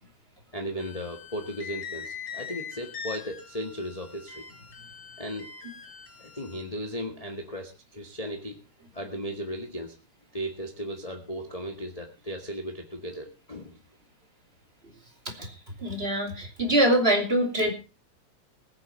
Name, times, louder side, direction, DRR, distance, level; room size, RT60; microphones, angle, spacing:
voice 1, 0.5-4.5 5.2-5.5 6.2-8.6 8.9-9.9 10.3-13.8, equal, 20° left, 2 dB, 1.0 m, -36 dB
sound 1, 0.8-6.6, left 7 dB, 45° left, 3.5 m, -42 dB
voice 2, 15.8-17.7, right 1 dB, 20° right, 2 dB, 2.8 m, -24 dB
21.0 x 8.3 x 4.3 m, 0.32 s
omnidirectional pair, 3.3 m